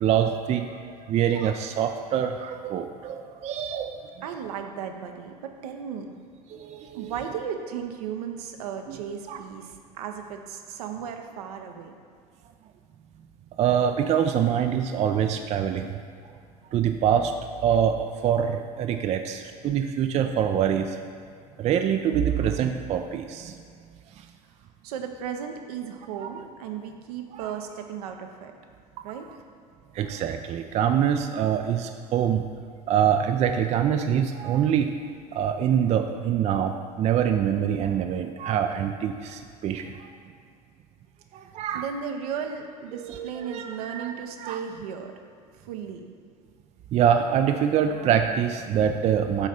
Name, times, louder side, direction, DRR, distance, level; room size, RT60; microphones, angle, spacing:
voice 1, 0.0-0.7 1.1-4.0 6.5-7.1 8.9-9.0 9.3-9.4 13.6-16.0 16.7-17.3 17.6-21.0 21.6-23.5 26.2-26.3 27.3-27.5 29.9-32.5 32.9-34.9 35.3-40.1 41.3-41.9 42.9-44.1 44.4-44.6 46.9-49.5, right 9 dB, 35° right, 6 dB, 0.4 m, -25 dB
voice 2, 4.2-6.1 6.9-11.9 24.8-28.5 29.0-29.3 41.4-45.1 45.6-46.0, right 7 dB, 70° right, 5 dB, 0.7 m, -35 dB
8.3 x 3.2 x 5.0 m, 2.3 s
hypercardioid pair, 75°, 20 cm